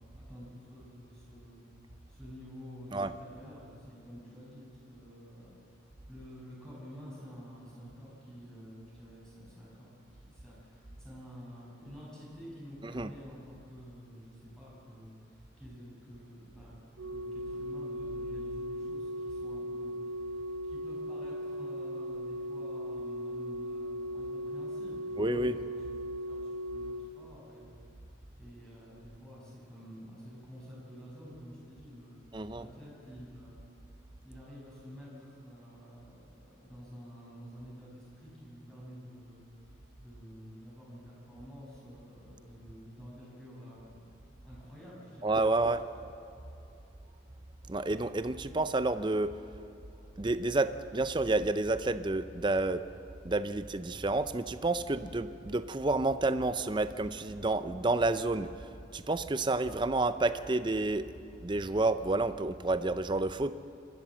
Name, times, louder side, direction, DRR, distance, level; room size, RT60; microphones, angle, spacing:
voice 1, 0.1-1.6 2.1-5.6 6.1-16.8 17.1-25.7 26.1-27.7 28.4-32.2 32.5-33.6 34.2-44.0 44.4-45.6, equal, 5° left, -7 dB, 6.4 m, -50 dB
Organ, 17.0-27.9 29.0-29.2, equal, 90° right, 1.0 m, -38 dB
voice 2, 25.2-25.6 32.3-32.7 45.2-45.8 47.7-49.3 50.2-52.8 53.2-58.5 58.9-61.1 61.4-63.5, right 2 dB, 25° right, 12 dB, 0.6 m, -29 dB
26.0 x 13.5 x 7.6 m, 2.7 s
head